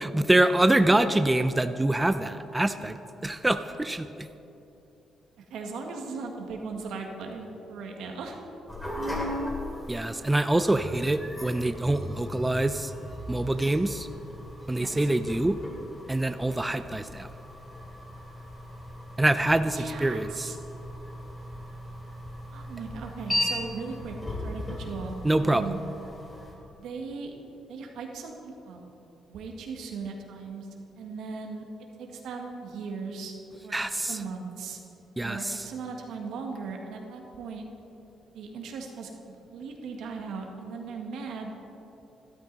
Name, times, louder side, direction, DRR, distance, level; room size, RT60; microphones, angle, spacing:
voice 1, 0.0-3.0 3.2-4.3 9.9-12.9 13.3-14.1 14.7-15.6 16.1-17.3 19.2-20.5 25.2-25.6 33.7-34.2 35.2-35.6, right 1 dB, 10° right, 10 dB, 0.4 m, -25 dB
voice 2, 5.4-8.4 14.8-15.1 19.7-20.6 22.5-25.8 26.8-27.3 27.7-28.8 29.3-30.7 31.0-31.6 32.0-33.3 33.6-34.8 35.2-37.6 38.3-39.1 39.5-41.5, right 4 dB, 80° right, 2 dB, 1.6 m, -38 dB
sound 1, 8.7-26.5, left 1 dB, 15° left, 2.7 m, -37 dB
13.0 x 12.5 x 4.0 m, 3.0 s
cardioid pair, 90°, 0 cm